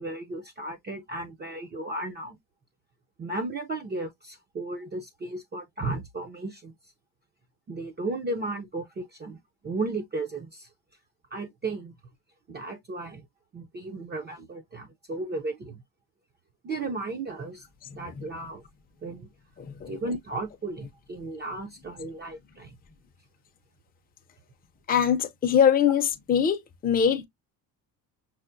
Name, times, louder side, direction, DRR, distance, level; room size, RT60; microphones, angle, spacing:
voice 1, 0.0-2.4 3.2-6.7 7.7-9.4 9.6-10.7 11.3-12.0 12.5-13.2 13.5-15.8 16.6-17.6 17.9-18.6 19.0-19.3 19.9-22.8 25.8-25.9, right 2 dB, 25° right, 0.5 m, -34 dB
voice 2, 19.6-19.9 24.9-27.2, left 8 dB, 20° left, 0.5 m, -23 dB
5.6 x 2.0 x 2.5 m
cardioid pair, 150°, 41 cm